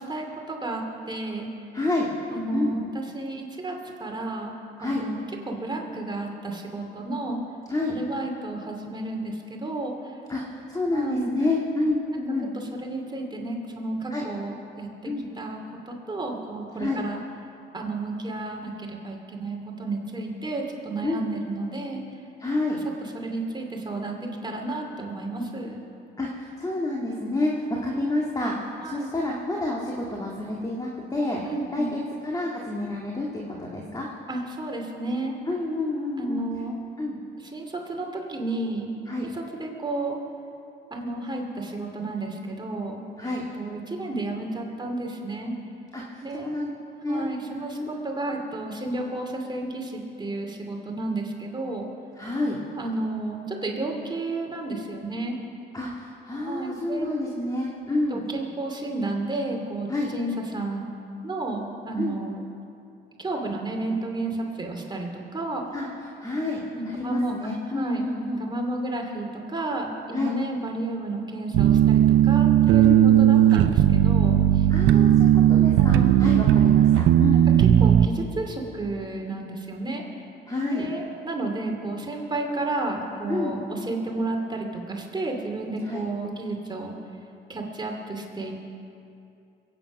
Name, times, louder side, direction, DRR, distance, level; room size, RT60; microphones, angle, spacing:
voice 1, 0.0-1.5 2.3-7.4 7.9-9.9 10.9-11.3 12.5-15.6 15.9-17.2 17.7-22.0 23.0-25.8 28.8-29.1 31.4-31.9 34.3-35.3 36.2-36.8 37.4-38.9 39.2-40.2 40.9-43.0 43.5-45.5 46.2-46.6 47.1-51.9 52.8-55.4 56.4-57.1 58.1-60.9 61.2-62.4 63.2-65.6 66.7-68.0 68.4-74.7 75.8-76.1 77.8-80.0 80.7-86.9 87.5-88.6, right 2 dB, 20° right, 1 dB, 2.6 m, -32 dB
voice 2, 1.7-2.1 2.5-2.8 4.8-5.0 7.7-7.9 10.3-12.5 14.1-14.3 15.0-15.3 16.8-17.0 21.0-21.3 22.4-22.8 26.2-27.5 27.8-31.4 31.7-33.3 33.6-34.1 35.5-36.5 37.0-37.2 39.1-39.3 43.2-43.4 45.9-46.7 47.0-47.3 47.8-47.9 52.2-52.6 55.7-58.2 59.9-60.1 62.0-62.2 65.7-65.8 66.2-68.4 70.1-70.3 72.8-73.2 74.7-77.5 80.5-80.8 83.3-83.6 85.9-86.1, left 2 dB, 20° left, -3 dB, 2.1 m, -28 dB
sound 1, 71.5-78.1, right 11 dB, 90° right, 0.7 m, -17 dB
22.0 x 9.2 x 6.0 m, 2.6 s
cardioid pair, 90°, 20 cm